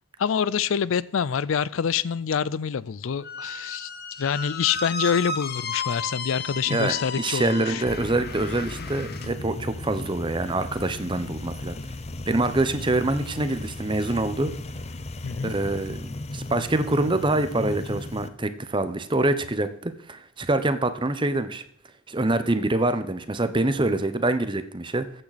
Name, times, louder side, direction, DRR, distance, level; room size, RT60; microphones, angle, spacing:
voice 1, 0.2-3.9 4.2-7.8 15.2-15.5, left 7 dB, 70° left, 0.4 m, -26 dB
Squeak, 3.2-9.3, left 4 dB, 50° left, 1.1 m, -34 dB
voice 2, 6.7-11.8 12.3-14.5 15.4-21.6 22.1-25.1, right 2 dB, 25° right, 0.8 m, -25 dB
sound 1, 7.9-18.3, left 2 dB, 30° left, 0.7 m, -36 dB
14.5 x 8.9 x 4.1 m
head